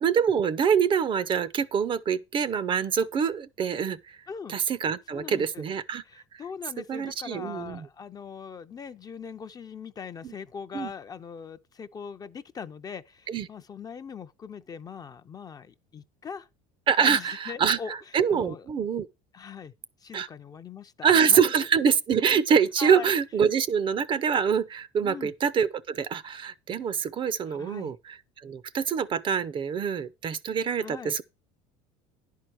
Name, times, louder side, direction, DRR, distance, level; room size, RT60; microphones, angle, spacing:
voice 1, 0.0-4.0 4.5-6.0 6.9-7.9 10.7-10.9 13.3-13.5 16.9-19.1 20.1-20.3 21.0-31.2, right 7 dB, 30° right, 0.5 m, -25 dB
voice 2, 4.3-4.6 5.1-5.7 6.0-16.5 17.0-18.0 18.3-18.7 19.3-19.7 20.0-21.4 22.8-23.1 25.0-25.3 27.5-27.9 30.8-31.2, left 6 dB, 25° left, 0.5 m, -41 dB
10.5 x 4.6 x 6.2 m
cardioid pair, 125°, 16 cm